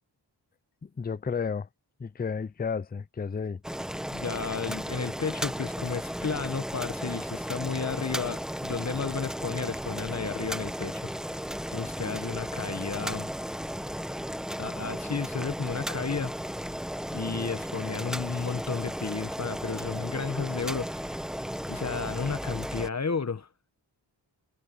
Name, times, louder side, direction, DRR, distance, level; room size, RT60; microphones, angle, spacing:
voice 1, 0.8-1.7 2.0-3.6, left 5 dB, 20° left, 0.5 m, -32 dB
Boiling, 3.6-22.9, equal, ahead, 1.1 m, -35 dB
voice 2, 4.1-11.4 11.7-13.3 14.6-16.3 17.1-21.2 21.7-23.5, left 5 dB, 35° left, 1.2 m, -33 dB
wide cardioid pair, 85°, 44 cm